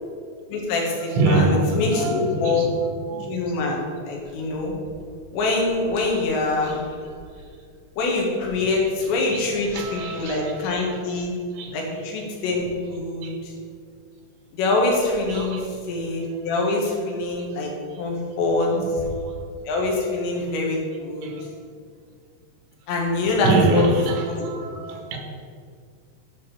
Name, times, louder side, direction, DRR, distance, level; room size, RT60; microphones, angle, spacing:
voice 1, 0.5-2.7 3.3-4.8 5.3-6.8 8.0-11.4 11.7-13.5 14.5-15.6 15.9-17.7 18.0-18.7 19.7-21.3 22.9-23.9 24.2-24.5, left 3 dB, 90° left, 3.8 m, -24 dB
voice 2, 1.0-2.7 3.1-3.3 6.6-6.7 9.3-9.4 9.7-10.5 11.6-11.8 13.2-13.3 15.3-15.6 18.7-18.9 21.2-21.4 23.5-25.2, right 2 dB, 85° right, 3.5 m, -24 dB
9.6 x 4.5 x 7.5 m
omnidirectional pair, 5.0 m